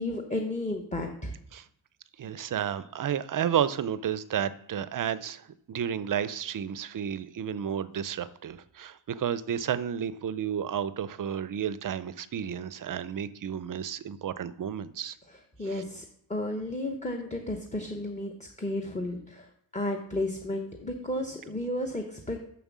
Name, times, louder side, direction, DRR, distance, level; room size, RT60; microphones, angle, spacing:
voice 1, 0.0-1.3 15.6-19.5 19.7-22.4, left 1 dB, 15° left, 3 dB, 0.8 m, -33 dB
voice 2, 2.2-15.2 15.6-15.8, right 9 dB, 45° right, 15 dB, 0.4 m, -32 dB
7.4 x 6.0 x 7.2 m, 0.68 s
wide cardioid pair, 160°, 49 cm